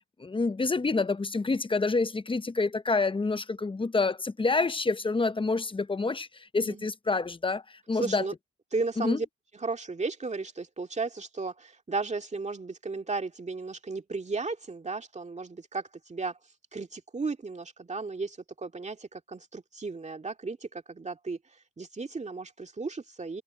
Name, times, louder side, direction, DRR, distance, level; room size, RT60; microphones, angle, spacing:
voice 1, 0.2-8.2 9.0-9.2, left 3 dB, 15° left, 0.7 m, -28 dB
voice 2, 8.0-8.3 8.7-9.3 9.6-16.4 16.7-21.4 21.8-23.4, right 3 dB, 25° right, 2.2 m, -34 dB
cardioid pair, 90°, 30 cm